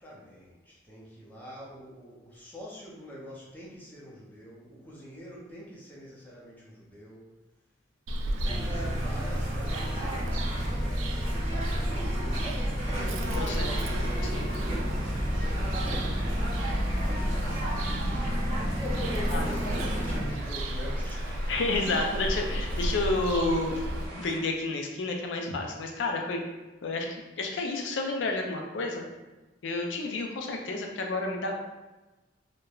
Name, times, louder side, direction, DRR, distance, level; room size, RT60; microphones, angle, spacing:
voice 1, 0.0-7.3 8.2-13.7 14.1-16.1 17.0-22.9, equal, 10° left, -6 dB, 0.5 m, -45 dB
Bird vocalization bird call bird song, 8.1-24.1, equal, 85° right, 0.3 m, -33 dB
sound 1, 8.4-20.2, equal, 30° right, 1.0 m, -31 dB
voice 2, 13.3-14.6 19.3-19.5 21.5-23.8 24.1-26.4 26.8-29.1 29.6-31.5, left 2 dB, 75° left, 2 dB, 0.4 m, -30 dB
sound 2, 13.4-24.4, right 1 dB, 50° right, 0.7 m, -44 dB
3.0 x 2.1 x 2.3 m, 1.1 s
head